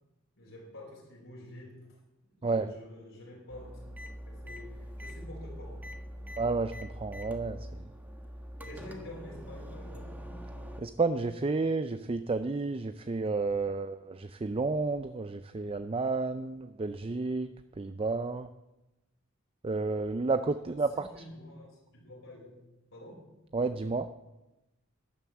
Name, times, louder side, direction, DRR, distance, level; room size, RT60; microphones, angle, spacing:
voice 1, 0.3-3.8 4.3-6.4 8.6-10.1 20.6-22.7 22.9-23.3, left 1 dB, 65° left, -4 dB, 5.1 m, -49 dB
sound 1, 3.5-10.8, equal, 10° right, 1.3 m, -43 dB
voice 2, 6.4-7.6 10.8-17.5 17.8-18.5 19.6-20.9 23.5-24.1, right 3 dB, 25° right, 10 dB, 0.4 m, -31 dB
12.0 x 11.5 x 7.3 m, 0.98 s
head